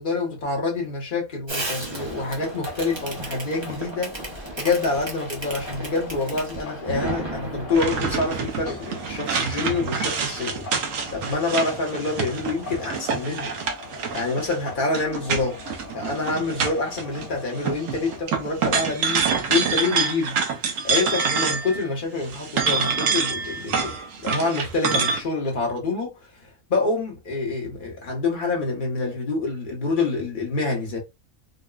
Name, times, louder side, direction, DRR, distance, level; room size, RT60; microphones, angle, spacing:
voice 1, 0.0-4.2 4.6-13.5 14.1-15.6 15.9-19.2 19.5-20.4 20.8-26.1 26.4-31.0, left 3 dB, 40° left, 1.1 m, -27 dB
Fireworks, 1.5-8.3, right 2 dB, 30° right, 0.5 m, -34 dB
sound 1, 2.0-18.2, left 5 dB, 80° left, 0.4 m, -42 dB
sound 2, 7.7-17.3 17.6-21.9 22.2-25.2, right 5 dB, 70° right, 1.0 m, -26 dB
3.9 x 2.2 x 2.3 m
omnidirectional pair, 1.5 m